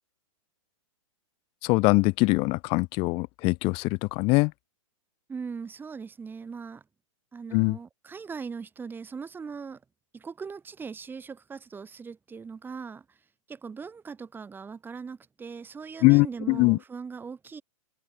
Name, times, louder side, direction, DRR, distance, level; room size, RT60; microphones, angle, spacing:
voice 1, 1.6-4.5 7.5-7.8 16.0-16.8, left 26 dB, 30° left, 0.6 m, -22 dB
voice 2, 5.3-6.8 7.3-9.8 10.1-13.2 13.5-17.6, right 5 dB, 10° right, 1.7 m, -40 dB
hypercardioid pair, 140°, 17 cm